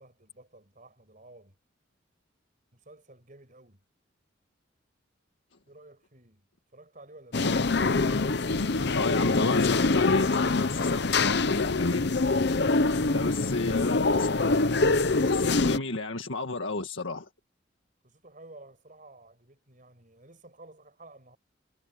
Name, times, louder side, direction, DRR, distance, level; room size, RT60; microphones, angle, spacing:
voice 1, 0.0-1.6 2.7-3.8 5.7-7.5 13.1-13.8 18.0-21.4, right 2 dB, 40° right, 6.0 m, -53 dB
sound 1, 7.3-15.8, left 3 dB, 55° left, 0.8 m, -25 dB
voice 2, 8.9-12.0 13.1-14.3 14.9-17.3, left 3 dB, 80° left, 1.7 m, -31 dB
head